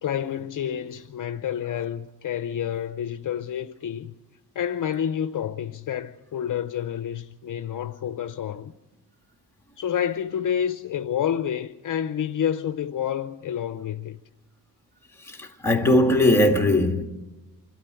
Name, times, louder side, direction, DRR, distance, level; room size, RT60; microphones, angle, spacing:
voice 1, 0.0-4.1 4.5-8.7 9.8-14.2, left 9 dB, 55° left, 0.7 m, -29 dB
voice 2, 15.3-17.0, left 1 dB, 5° left, 2.0 m, -20 dB
25.5 x 12.5 x 8.2 m
wide cardioid pair, 140°, 39 cm